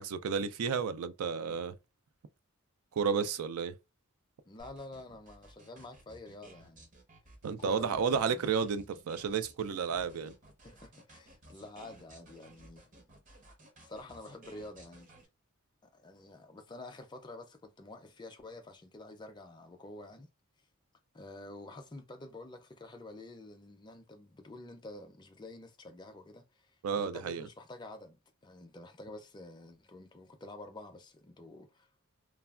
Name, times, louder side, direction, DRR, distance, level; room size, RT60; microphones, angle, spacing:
voice 1, 0.0-1.7 2.9-3.8 7.4-10.3 26.8-27.5, right 6 dB, 80° right, 0.4 m, -32 dB
voice 2, 4.5-6.9 7.6-8.4 10.6-13.1 13.8-15.2 15.8-20.3 21.1-31.9, left 2 dB, 20° left, 0.4 m, -49 dB
sound 1, 4.6-15.3, right 1 dB, 35° right, 0.7 m, -57 dB
3.2 x 2.2 x 2.3 m
head